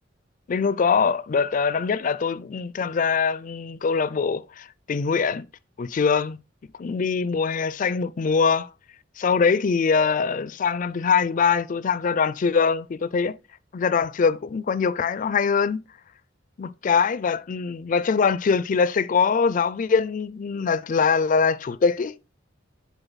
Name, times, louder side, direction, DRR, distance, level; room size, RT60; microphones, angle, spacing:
voice 1, 0.5-5.5 5.8-6.4 6.8-8.7 9.2-13.4 13.7-15.8 16.6-22.2, left 5 dB, 40° left, 0.4 m, -23 dB
7.0 x 3.8 x 4.0 m
head